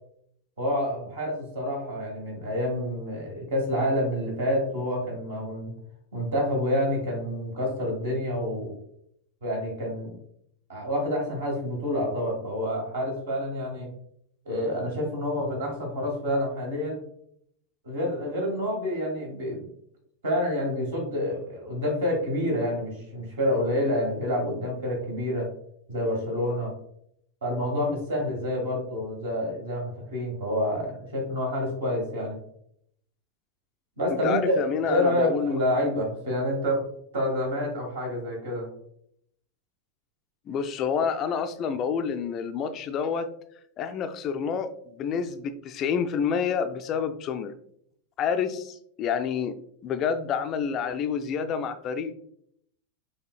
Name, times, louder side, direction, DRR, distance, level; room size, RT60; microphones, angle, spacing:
voice 1, 0.6-5.7 6.1-8.7 9.4-10.2 10.7-13.9 14.5-17.0 17.8-19.7 20.2-25.5 25.9-26.7 27.4-32.4 34.0-36.8 37.1-38.7, equal, 60° right, -1 dB, 1.7 m, -28 dB
voice 2, 34.2-35.6 40.5-43.3 43.8-47.5 48.2-49.6 49.8-52.2, left 6 dB, 35° left, 9 dB, 0.3 m, -28 dB
5.5 x 3.3 x 2.2 m, 0.70 s
figure-of-eight pair, 90°, 0 cm